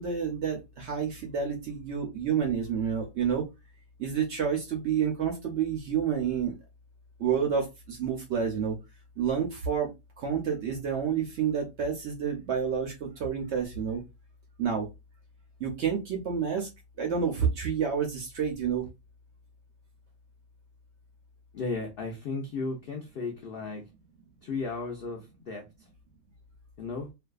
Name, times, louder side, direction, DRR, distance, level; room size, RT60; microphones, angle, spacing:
voice 1, 0.0-3.4 4.0-6.5 7.2-8.8 9.2-9.9 10.2-14.0 14.6-14.9 15.6-16.7 17.0-18.9, right 7 dB, 65° right, 0.7 m, -29 dB
voice 2, 21.5-23.9 24.4-25.9 26.8-27.1, left 3 dB, 70° left, 0.5 m, -35 dB
2.5 x 2.3 x 2.2 m
omnidirectional pair, 1.6 m